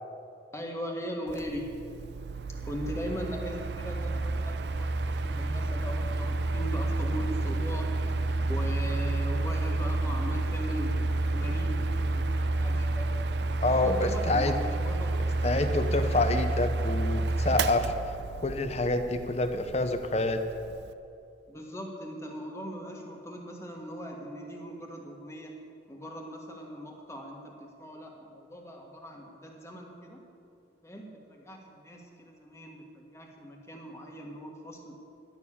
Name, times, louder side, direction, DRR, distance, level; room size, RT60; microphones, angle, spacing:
voice 1, 0.5-1.7 2.7-7.9 8.5-13.1 13.8-15.1 21.5-25.5 25.9-30.2 30.8-35.0, equal, 15° left, 0 dB, 1.6 m, -39 dB
Mechanical fan, 1.3-20.9, right 2 dB, 65° right, 0.5 m, -30 dB
voice 2, 13.6-14.5 15.4-17.9 18.4-20.4, left 2 dB, 35° left, 8 dB, 0.7 m, -27 dB
11.5 x 7.0 x 8.6 m, 2.6 s
head